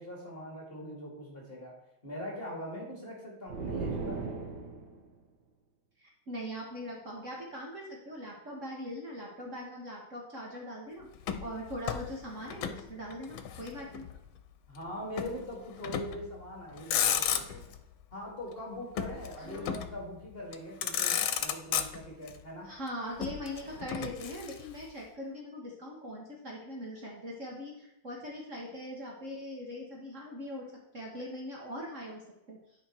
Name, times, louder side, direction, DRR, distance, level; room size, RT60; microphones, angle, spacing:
voice 1, 0.0-4.4 14.7-17.6 18.1-22.8, equal, 30° left, -1 dB, 2.2 m, -42 dB
sound 1, 3.5-5.1, right 4 dB, 60° right, 1.6 m, -36 dB
voice 2, 6.0-11.1 11.4-14.1 19.4-19.8 22.6-30.7 30.9-32.6, equal, 40° right, -2 dB, 1.7 m, -41 dB
Motor vehicle (road), 11.2-12.8 13.1-14.2 15.2-15.4 15.8-16.3 16.7-17.8 19.0-20.0 20.5-20.6 20.8-22.3 23.2-24.8, left 9 dB, 85° left, 1.6 m, -33 dB
9.8 x 5.0 x 4.5 m, 0.90 s
omnidirectional pair, 2.2 m